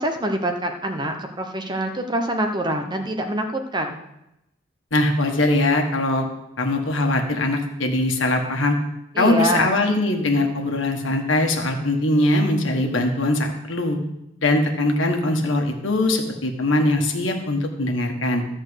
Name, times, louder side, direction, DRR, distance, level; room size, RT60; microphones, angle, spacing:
voice 1, 0.0-3.4 3.7-4.0 9.1-9.7, right 1 dB, 20° right, 4 dB, 1.0 m, -25 dB
voice 2, 4.9-6.3 6.6-8.8 9.2-14.0 14.4-18.4, left 1 dB, 70° left, 3 dB, 1.6 m, -21 dB
13.0 x 4.5 x 8.0 m, 0.87 s
head